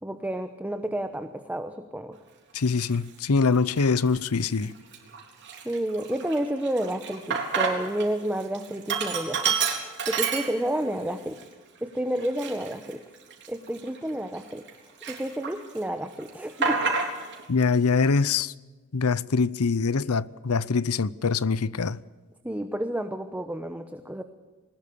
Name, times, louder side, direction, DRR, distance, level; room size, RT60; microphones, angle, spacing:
voice 1, 0.0-2.2 5.6-9.6 10.1-11.4 11.8-13.0 13.5-14.6 15.1-16.8 22.4-24.2, right 1 dB, 5° right, 1.0 m, -30 dB
voice 2, 2.5-4.7 17.5-18.5 18.9-22.0, left 4 dB, 90° left, 0.7 m, -24 dB
Sink (filling or washing), 2.8-3.0 3.6-4.2 4.5-4.6 4.9-8.1 8.4-10.9 11.4-11.5 12.2-14.7 15.0-15.8 16.1-17.4, right 5 dB, 55° right, 3.8 m, -29 dB
21.0 x 20.0 x 7.0 m
head